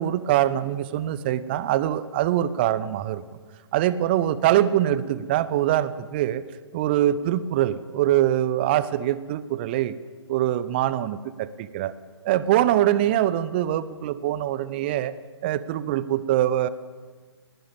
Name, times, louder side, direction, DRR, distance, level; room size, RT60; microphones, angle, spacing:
voice 1, 0.0-3.2 3.7-6.4 6.7-9.9 10.3-11.9 12.2-15.2 15.4-16.7, right 12 dB, 20° right, 17 dB, 0.6 m, -23 dB
19.5 x 17.5 x 9.0 m, 1.5 s
figure-of-eight pair, 135°, 15 cm